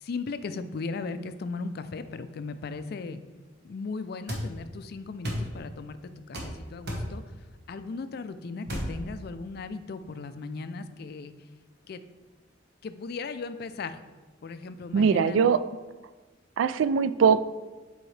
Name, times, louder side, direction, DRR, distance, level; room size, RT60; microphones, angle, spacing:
voice 1, 0.0-3.2 3.6-7.2 7.7-11.3 11.9-12.0 12.8-14.0 14.4-15.4, left 4 dB, 55° left, 11 dB, 0.4 m, -37 dB
sound 1, 4.3-4.5 5.2-5.5 6.3-6.5 6.9-7.1 8.7-8.9, equal, 60° right, 1.3 m, -31 dB
voice 2, 14.9-15.6 16.6-17.4, right 6 dB, 85° right, 14 dB, 0.3 m, -21 dB
7.8 x 4.7 x 3.2 m, 1.3 s
head